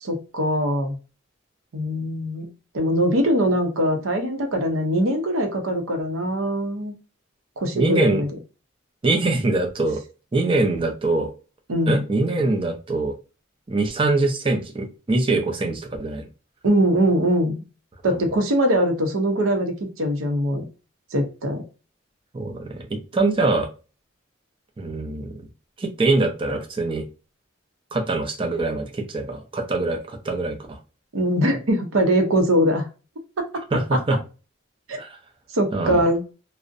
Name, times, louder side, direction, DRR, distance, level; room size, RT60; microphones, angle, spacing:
voice 1, 0.0-0.9 1.7-2.5 2.7-6.9 7.6-8.3 11.7-12.0 16.6-17.6 18.0-20.6 21.1-21.6 31.1-32.9 33.4-33.5 33.9-34.0 34.9-35.0 35.5-36.2, equal, 80° right, 5 dB, 0.6 m, -22 dB
voice 2, 7.7-8.2 9.0-10.0 10.3-11.3 11.9-13.1 13.7-16.3 18.0-18.2 22.3-23.7 24.8-25.3 25.8-27.0 27.9-30.8 33.7-34.2 34.9-35.1 35.7-36.0, right 2 dB, 25° right, 3 dB, 0.4 m, -23 dB
2.5 x 2.0 x 2.4 m, 0.33 s
head